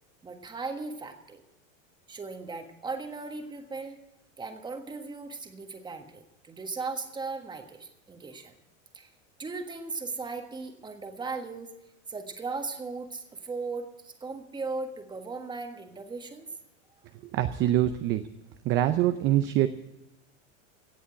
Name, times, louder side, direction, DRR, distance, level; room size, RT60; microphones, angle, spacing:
voice 1, 0.2-1.4 2.1-4.0 4.4-8.6 8.9-9.1 9.4-11.7 12.1-16.5, right 4 dB, 10° right, 5 dB, 1.5 m, -37 dB
voice 2, 17.3-18.2 18.6-19.7, right 13 dB, 30° right, 9 dB, 0.6 m, -24 dB
17.0 x 7.2 x 8.9 m, 0.91 s
supercardioid pair, 140°, 38 cm